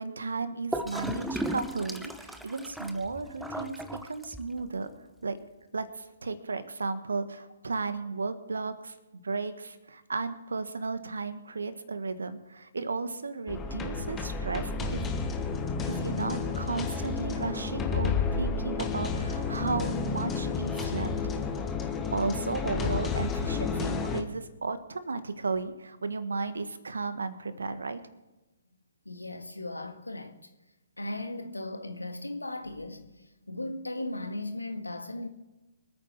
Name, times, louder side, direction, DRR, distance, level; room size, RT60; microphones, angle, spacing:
voice 1, 0.0-4.9 5.2-5.4 5.7-8.9 9.2-15.1 15.9-21.1 22.1-28.0, right 4 dB, 70° right, 1.5 m, -34 dB
Gurgling / Toilet flush, 0.7-4.7, right 1 dB, ahead, 0.8 m, -36 dB
sound 1, 13.5-24.2, left 4 dB, 15° left, 1.4 m, -31 dB
voice 2, 29.1-30.4 31.0-35.3, left 2 dB, 85° left, 1.8 m, -37 dB
25.0 x 9.2 x 4.7 m
figure-of-eight pair, 130°, 0 cm